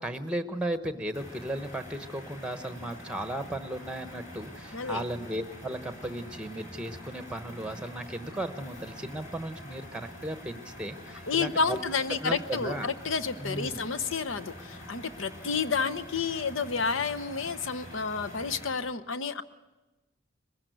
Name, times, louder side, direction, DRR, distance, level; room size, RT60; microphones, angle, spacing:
voice 1, 0.0-11.8 12.2-12.9 13.4-13.8, right 1 dB, 5° right, 10 dB, 1.0 m, -35 dB
sound 1, 1.1-18.7, left 1 dB, 40° left, 5.9 m, -46 dB
voice 2, 11.3-19.4, left 5 dB, 75° left, 10 dB, 0.9 m, -30 dB
21.5 x 15.5 x 9.3 m, 1.1 s
head